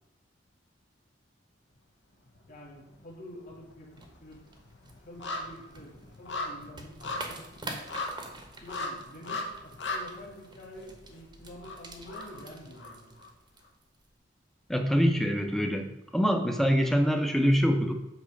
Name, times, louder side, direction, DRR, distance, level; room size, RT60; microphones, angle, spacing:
sound 1, 2.3-3.0 3.3-13.3 13.6-13.7, left 2 dB, 70° left, 1.0 m, -39 dB
voice 1, 2.5-4.4 5.0-7.9 8.6-13.1, left 1 dB, 45° left, -3 dB, 2.1 m, -48 dB
sound 2, 3.9-14.2, right 2 dB, 25° right, 0.9 m, -47 dB
voice 2, 14.7-17.9, equal, ahead, 4 dB, 0.6 m, -25 dB
8.2 x 3.0 x 6.3 m, 0.92 s
head